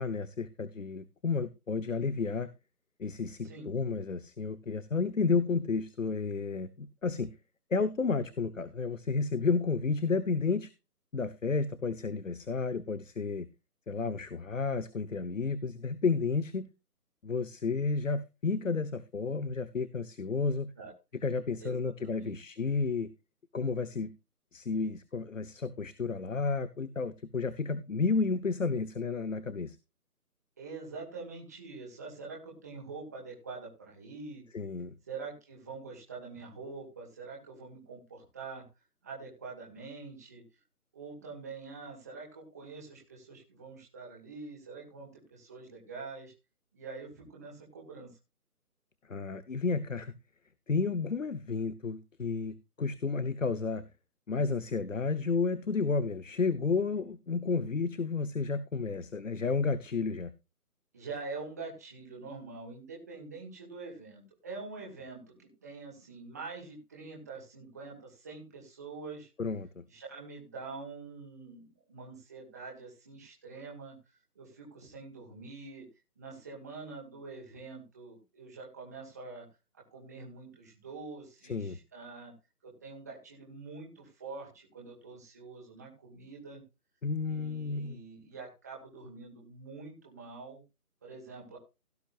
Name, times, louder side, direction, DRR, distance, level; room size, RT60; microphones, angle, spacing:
voice 1, 0.0-2.5 3.0-7.3 7.7-10.7 11.1-13.5 13.9-16.7 17.2-20.7 21.2-23.1 23.5-24.1 24.5-29.8 34.5-35.0 49.1-50.1 50.7-53.8 54.3-60.3 69.4-69.8 81.5-81.8 87.0-88.0, left 4 dB, 55° left, 15 dB, 1.1 m, -31 dB
voice 2, 22.0-22.3 30.6-34.4 35.1-38.6 39.0-40.4 40.9-46.3 46.7-48.1 60.9-69.3 69.9-74.0 74.4-75.8 76.2-79.4 79.7-82.3 82.6-86.6 87.2-90.6 91.0-91.6, right 4 dB, 10° right, -2 dB, 2.0 m, -45 dB
17.0 x 9.1 x 2.5 m, 0.27 s
figure-of-eight pair, 175°, 46 cm